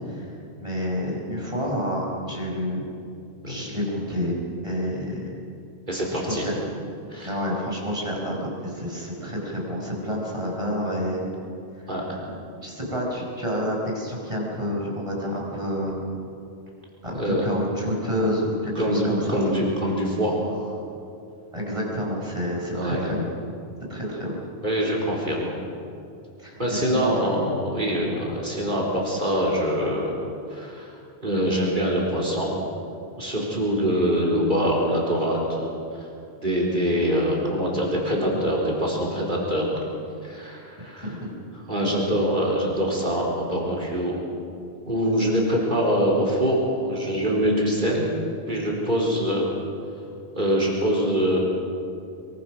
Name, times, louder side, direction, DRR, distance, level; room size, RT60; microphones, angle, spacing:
voice 1, 0.0-2.9 3.5-4.4 4.6-5.3 6.1-6.6 7.2-11.2 12.6-16.0 17.0-19.4 21.5-23.3 23.9-24.4 26.4-27.2 41.0-41.3 42.0-42.2, equal, 30° right, -2 dB, 5.4 m, -29 dB
voice 2, 5.9-6.5 7.1-7.3 11.9-12.2 17.1-17.4 18.8-20.7 22.7-23.0 24.6-25.5 26.6-30.1 30.5-30.9 31.2-32.5 33.2-35.7 36.0-36.1 36.4-39.8 40.2-41.1 41.7-44.2 44.9-48.1 48.5-49.5 50.4-51.4, equal, 50° right, -2 dB, 4.4 m, -24 dB
24.0 x 23.5 x 6.3 m, 2.6 s
omnidirectional pair, 1.1 m